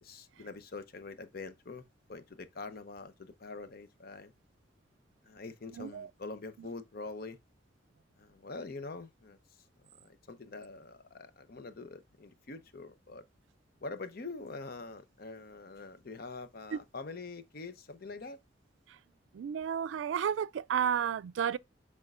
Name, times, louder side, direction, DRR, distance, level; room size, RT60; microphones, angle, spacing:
voice 1, 0.0-4.3 5.2-7.4 8.2-9.4 10.0-13.2 13.8-18.4, left 3 dB, 55° left, 0.8 m, -45 dB
voice 2, 5.8-6.1 16.7-16.8 19.3-21.6, right 8 dB, 85° right, 0.3 m, -32 dB
10.5 x 3.6 x 2.4 m
head